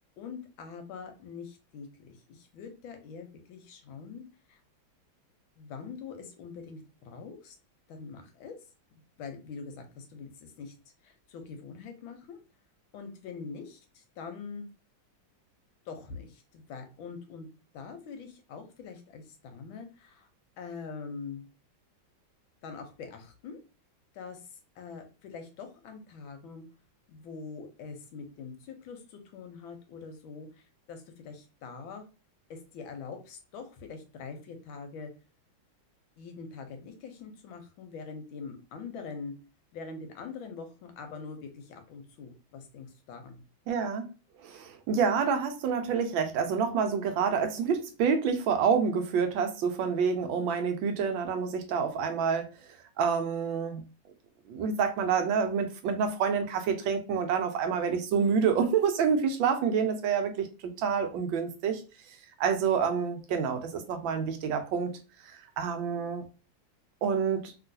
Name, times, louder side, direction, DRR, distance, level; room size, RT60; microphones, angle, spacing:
voice 1, 0.2-4.6 5.6-7.6 7.9-8.5 9.0-10.7 11.0-12.4 12.9-14.7 15.9-17.5 17.7-20.3 20.6-21.5 22.6-23.6 24.1-24.4 24.8-26.6 27.1-32.1 32.5-35.1 36.2-39.3 39.7-43.4, left 5 dB, 85° left, 6 dB, 1.5 m, -44 dB
voice 2, 43.7-44.1 44.4-52.5 53.0-53.8 54.5-61.8 62.4-64.9 65.2-66.2 67.0-67.5, right 6 dB, 80° right, 6 dB, 1.4 m, -28 dB
3.1 x 3.0 x 2.6 m, 0.33 s
omnidirectional pair, 2.1 m